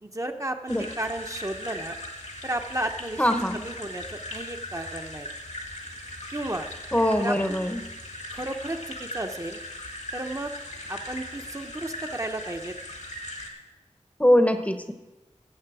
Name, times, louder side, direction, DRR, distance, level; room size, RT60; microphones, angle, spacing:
voice 1, 0.0-2.0 2.4-5.3 6.3-6.7 7.2-7.7 8.3-9.6 10.1-10.5 10.9-12.7, right 1 dB, 25° right, 4 dB, 0.8 m, -33 dB
sound 1, 0.7-13.5, left 1 dB, 75° left, 1.8 m, -39 dB
voice 2, 3.2-3.6 6.9-7.8 14.2-14.9, left 1 dB, 10° left, 8 dB, 0.8 m, -22 dB
16.0 x 7.2 x 4.8 m, 1.1 s
wide cardioid pair, 65°, 12 cm